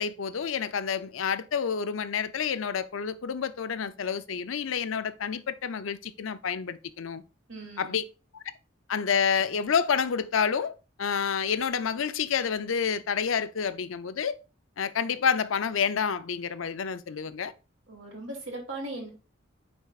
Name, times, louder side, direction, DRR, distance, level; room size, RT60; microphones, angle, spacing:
voice 1, 0.0-7.2 7.8-8.0 8.9-10.7 11.0-14.4 14.8-17.5, left 6 dB, 85° left, 0.5 m, -29 dB
voice 2, 7.5-8.0 17.9-19.1, right 2 dB, 75° right, 2.6 m, -38 dB
9.1 x 4.4 x 2.4 m
head